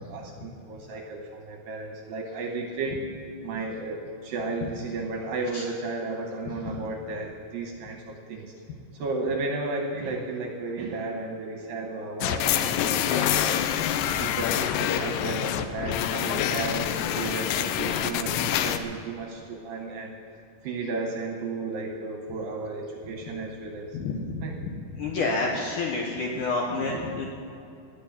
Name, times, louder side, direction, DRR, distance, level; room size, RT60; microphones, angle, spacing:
voice 1, 0.0-3.1 3.4-8.5 8.9-13.7 14.2-20.2 20.6-24.0 24.4-24.6 26.3-26.4 26.7-27.0, right 3 dB, 75° right, 2 dB, 2.2 m, -34 dB
sound 1, 12.2-18.8, left 10 dB, 85° left, 2.8 m, -26 dB
voice 2, 23.9-24.3 25.0-27.3, left 3 dB, 70° left, -1 dB, 2.1 m, -28 dB
17.5 x 6.3 x 9.9 m, 2.6 s
omnidirectional pair, 5.1 m